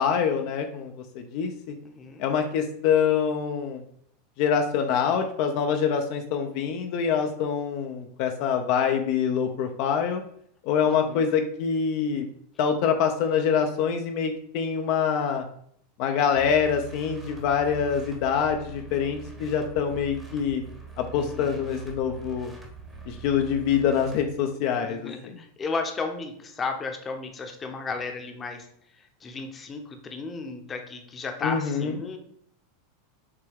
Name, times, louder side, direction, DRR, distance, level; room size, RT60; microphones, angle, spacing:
voice 1, 0.0-1.8 2.2-3.8 4.4-10.2 10.6-12.3 12.6-15.4 16.0-20.6 21.0-22.5 23.1-25.1 31.4-31.9, left 7 dB, 55° left, 4 dB, 0.5 m, -25 dB
voice 2, 1.8-2.2 10.8-11.3 21.1-21.6 24.8-28.7 29.0-32.2, left 4 dB, 25° left, 5 dB, 0.7 m, -34 dB
sound 1, 16.3-24.3, right 4 dB, 10° right, 0.9 m, -43 dB
6.5 x 2.2 x 3.4 m, 0.67 s
supercardioid pair, 120°, 0 cm